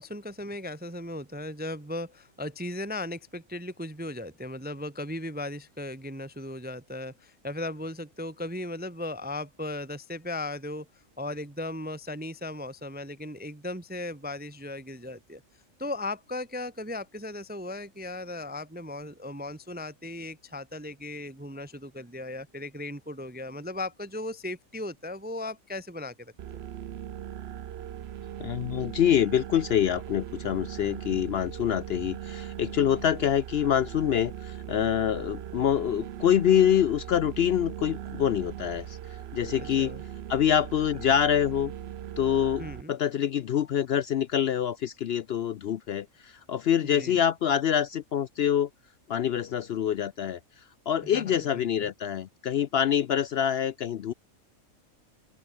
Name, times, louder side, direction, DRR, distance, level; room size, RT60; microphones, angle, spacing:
voice 1, 0.0-10.9 11.2-15.4 15.8-26.6 39.6-40.0 42.6-42.9 46.8-47.2 51.0-51.9, left 1 dB, 10° right, 0.4 m, -37 dB
sound 1, 26.4-42.8, right 11 dB, 60° right, 0.8 m, -39 dB
voice 2, 28.4-39.0 39.3-40.0 40.3-41.7 42.2-48.7 49.1-50.4 50.9-54.1, left 9 dB, 60° left, 0.7 m, -26 dB
open air
omnidirectional pair, 1.4 m